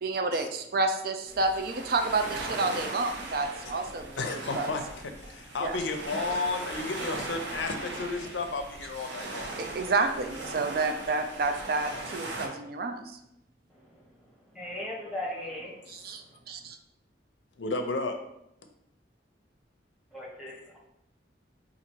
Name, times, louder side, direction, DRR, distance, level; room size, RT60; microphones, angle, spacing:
voice 1, 0.0-4.7 5.6-5.8 9.6-13.2 15.9-16.8, right 3 dB, 55° right, 6 dB, 0.4 m, -30 dB
sound 1, 1.3-12.5, right 2 dB, 80° right, 0.8 m, -39 dB
voice 2, 4.2-4.8 5.2-9.5 17.6-18.1, left 3 dB, 80° left, 6 dB, 0.5 m, -32 dB
voice 3, 14.5-16.0 20.1-20.8, left 1 dB, ahead, -5 dB, 1.0 m, -38 dB
4.2 x 2.5 x 4.5 m, 0.82 s
head